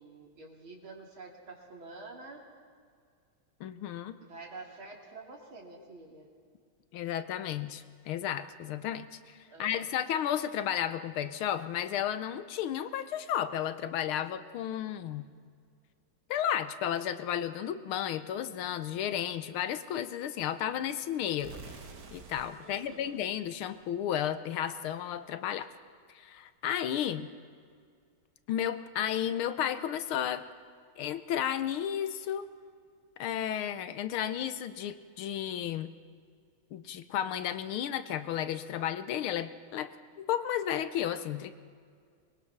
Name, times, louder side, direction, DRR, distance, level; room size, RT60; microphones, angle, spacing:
voice 1, 0.0-2.4 4.2-6.3 9.5-9.9 22.6-23.2, right 3 dB, 65° right, 0 dB, 3.7 m, -48 dB
voice 2, 3.6-4.2 6.9-15.3 16.3-21.6 22.1-25.7 26.1-27.3 28.5-30.5 31.0-32.4 33.2-35.9 36.7-41.5, left 10 dB, 80° left, 12 dB, 1.7 m, -33 dB
sound 1, 21.4-24.3, right 4 dB, 50° right, 1.6 m, -50 dB
24.0 x 21.0 x 6.0 m, 2.1 s
omnidirectional pair, 2.4 m